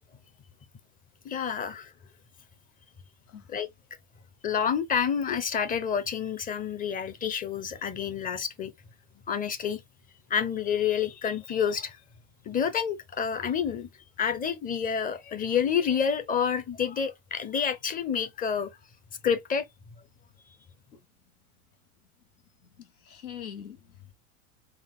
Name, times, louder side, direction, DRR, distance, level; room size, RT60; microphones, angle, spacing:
voice 1, 1.2-1.9 3.5-3.7 4.4-8.7 9.3-9.8 10.3-12.0 12.4-13.9 14.2-18.7 19.2-19.7, left 7 dB, 20° left, 0.6 m, -28 dB
voice 2, 22.8-24.1, left 9 dB, 85° left, 1.3 m, -43 dB
3.6 x 2.4 x 3.5 m
supercardioid pair, 120°, 42 cm